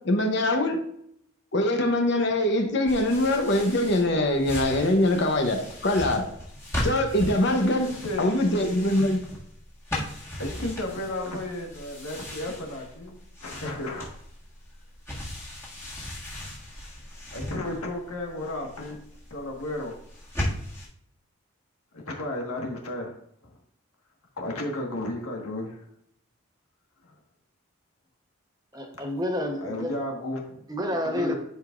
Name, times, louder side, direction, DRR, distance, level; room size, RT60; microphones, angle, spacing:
voice 1, 0.0-0.8 1.5-6.2 6.8-7.9 8.2-9.2, left 1 dB, 55° left, 4 dB, 0.9 m, -23 dB
sound 1, 2.9-20.9, left 1 dB, 10° left, 1.6 m, -37 dB
voice 2, 7.6-8.3 10.4-14.1 17.3-19.0 19.3-19.9 21.9-23.2 24.4-25.8 27.0-27.1 29.6-30.7 31.0-31.3, left 1 dB, 90° left, 0 dB, 1.6 m, -33 dB
voice 3, 28.7-29.9 30.7-31.3, left 1 dB, 15° right, 2 dB, 0.9 m, -29 dB
11.0 x 4.8 x 2.5 m, 0.72 s
head